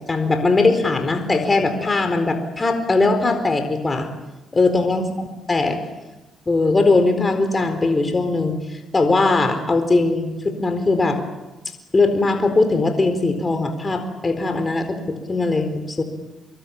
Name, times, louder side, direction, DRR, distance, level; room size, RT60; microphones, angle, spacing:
voice 1, 0.1-4.1 4.5-5.8 6.5-11.2 11.9-16.0, left 3 dB, 30° left, 7 dB, 4.3 m, -20 dB
25.0 x 21.5 x 8.8 m, 1.1 s
supercardioid pair, 70°, 0 cm